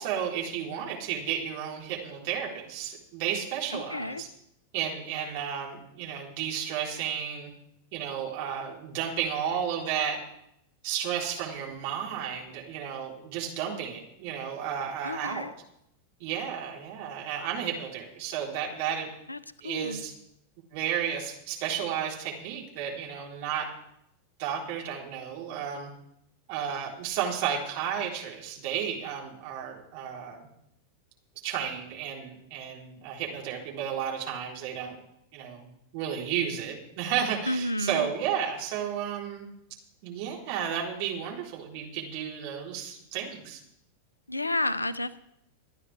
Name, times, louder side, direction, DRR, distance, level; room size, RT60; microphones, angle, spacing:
voice 1, 0.0-4.3 4.7-7.5 7.9-10.2 10.8-15.5 16.2-19.1 19.6-20.1 20.7-23.7 24.4-25.9 26.5-30.5 31.4-34.9 35.3-35.7 35.9-39.5 40.0-43.6, right 8 dB, 50° right, -2 dB, 3.8 m, -32 dB
voice 2, 3.7-4.2 15.0-15.5 19.3-19.4 19.6-20.0 37.5-38.1 44.3-45.2, left 1 dB, 80° left, 17 dB, 0.6 m, -31 dB
26.0 x 9.8 x 3.4 m, 0.78 s
figure-of-eight pair, 90°, 0 cm